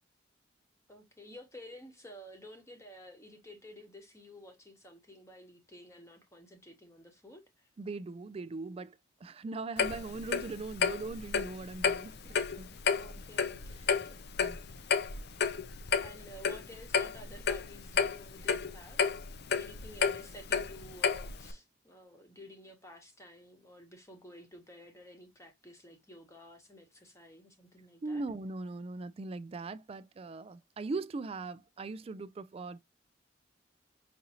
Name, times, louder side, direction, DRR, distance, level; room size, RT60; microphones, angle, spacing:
voice 1, 0.9-7.7 12.9-13.8 14.1-14.2 16.0-19.1 19.6-28.2, left 1 dB, 15° left, 1.0 m, -52 dB
voice 2, 7.8-12.7 14.4-14.6 28.0-32.8, right 3 dB, 30° right, 0.3 m, -40 dB
Clock, 9.8-21.5, left 6 dB, 55° left, 0.5 m, -32 dB
5.1 x 2.7 x 2.8 m
head